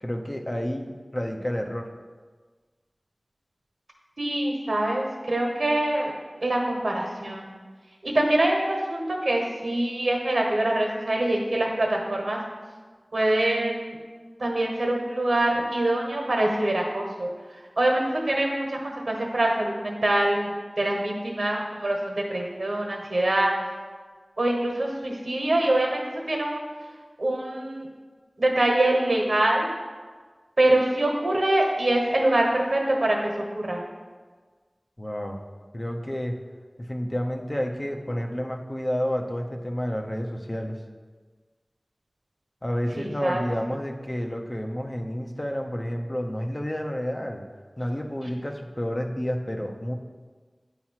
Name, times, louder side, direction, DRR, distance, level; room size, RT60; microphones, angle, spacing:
voice 1, 0.0-1.9 35.0-35.4 35.7-36.4 36.9-40.8 42.6-47.4 47.8-50.0, equal, 30° left, 2 dB, 0.7 m, -30 dB
voice 2, 4.2-7.5 8.0-12.4 13.1-13.9 14.4-17.3 17.8-20.5 20.8-23.5 24.4-26.7 27.2-27.9 28.4-29.7 30.6-33.8 42.9-43.4, right 1 dB, 85° right, 0 dB, 1.2 m, -24 dB
8.6 x 3.0 x 5.7 m, 1.4 s
wide cardioid pair, 45°, 0 cm